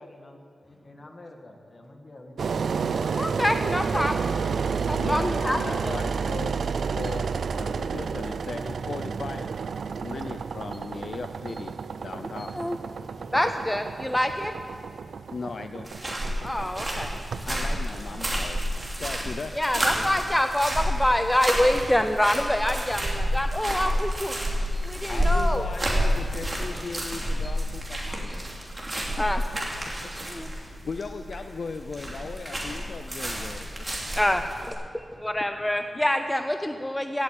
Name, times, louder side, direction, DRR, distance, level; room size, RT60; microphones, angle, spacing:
voice 1, 0.0-2.5, left 1 dB, 35° left, 3 dB, 1.8 m, -48 dB
Engine, 2.4-19.3, right 5 dB, 75° right, 0.4 m, -31 dB
voice 2, 3.1-4.3 4.7-6.0 12.4-12.8 13.3-14.5 16.4-17.1 19.5-24.3 24.7-25.7 29.2-29.4 30.3-30.5 34.2-37.2, left 1 dB, 10° left, 7 dB, 0.6 m, -26 dB
voice 3, 5.0-6.6 6.9-9.5 10.0-12.5 15.3-15.9 17.5-18.6 19.0-19.5 25.1-28.3 28.9-29.2 29.9-30.1 30.5-33.7, left 4 dB, 55° left, 8 dB, 0.5 m, -37 dB
sound 1, 15.8-34.7, equal, 20° right, 2.9 m, -30 dB
17.0 x 8.8 x 8.6 m, 2.3 s
wide cardioid pair, 150°, 0 cm